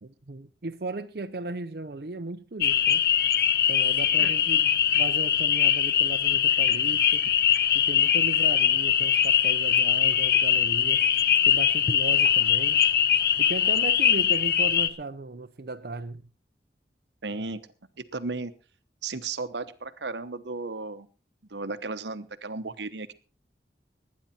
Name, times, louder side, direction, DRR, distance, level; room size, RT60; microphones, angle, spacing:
voice 1, 0.0-3.0 3.7-7.2 7.7-11.1 11.4-12.8 13.4-16.2, right 2 dB, 60° right, 0.7 m, -36 dB
sound 1, 2.6-14.9, left 9 dB, 60° left, 0.8 m, -22 dB
voice 2, 17.2-17.6 18.0-18.5 19.0-21.1 21.5-23.1, right 3 dB, 85° right, 1.1 m, -34 dB
20.0 x 9.7 x 4.3 m
head